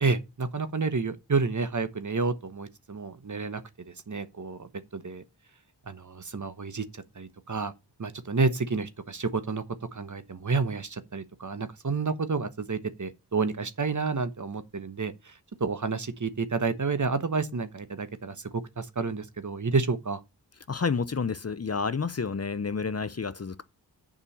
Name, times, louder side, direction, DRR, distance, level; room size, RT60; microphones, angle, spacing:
voice 1, 0.0-3.6 4.1-5.2 5.9-7.7 8.0-9.6 9.9-15.3 15.6-18.5 18.8-20.2, right 4 dB, 45° right, 1.1 m, -30 dB
voice 2, 20.7-23.6, left 5 dB, 35° left, 0.7 m, -30 dB
7.0 x 5.4 x 7.1 m
cardioid pair, 45°, 41 cm